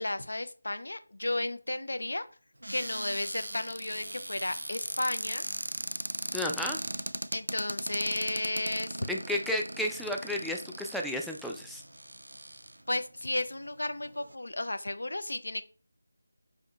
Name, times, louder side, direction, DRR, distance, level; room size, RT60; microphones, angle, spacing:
voice 1, 0.0-2.2 2.7-5.4 7.3-9.1 12.9-15.6, left 2 dB, 70° left, 11 dB, 0.5 m, -33 dB
Cupboard open or close, 2.6-13.0 13.7-13.8 14.0-14.3, right 1 dB, 80° right, 0.3 m, -38 dB
voice 2, 6.3-6.8 9.1-11.8, left 1 dB, ahead, 0 dB, 0.3 m, -32 dB
5.0 x 3.5 x 2.3 m, 0.39 s
figure-of-eight pair, 165°, 0 cm